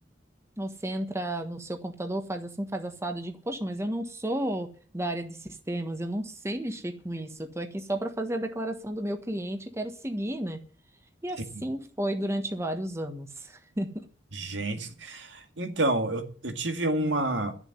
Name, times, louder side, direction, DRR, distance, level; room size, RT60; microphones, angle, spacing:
voice 1, 0.6-10.6 11.2-14.1, right 1 dB, 15° right, 1.4 m, -32 dB
voice 2, 14.3-17.6, right 2 dB, 80° right, 2.1 m, -29 dB
12.0 x 7.2 x 9.7 m
head